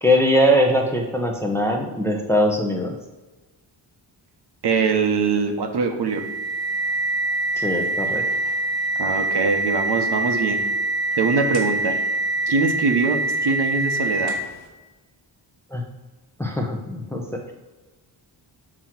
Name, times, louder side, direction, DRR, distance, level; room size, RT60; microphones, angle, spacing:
voice 1, 0.0-2.9 7.6-8.2 15.7-15.8 16.4-17.5, equal, 5° left, 1 dB, 0.8 m, -21 dB
voice 2, 4.6-6.2 9.0-10.6 11.2-11.9 12.5-14.3, right 4 dB, 60° right, 4 dB, 1.1 m, -22 dB
sound 1, 6.1-14.6, right 2 dB, 85° right, 2.0 m, -24 dB
7.4 x 3.1 x 5.9 m, 1.2 s
wide cardioid pair, 140°, 46 cm